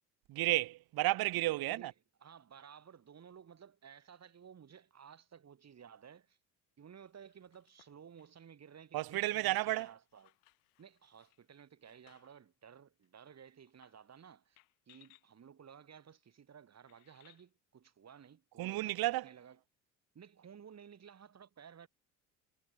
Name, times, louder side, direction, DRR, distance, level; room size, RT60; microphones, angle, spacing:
voice 1, 0.3-1.9 8.9-9.9 18.6-19.3, right 17 dB, 60° right, 1.4 m, -32 dB
voice 2, 1.6-1.9 2.2-6.4 6.8-10.3 10.8-14.6 14.9-19.6 20.1-21.9, right 7 dB, 40° right, 5.3 m, -56 dB
sound 1, 7.0-12.5 13.0-13.1 13.7-14.2 14.6-15.3 16.1-16.2 16.9-17.5 18.7-19.2, left 38 dB, 80° left, 7.7 m, -69 dB
supercardioid pair, 75°, 41 cm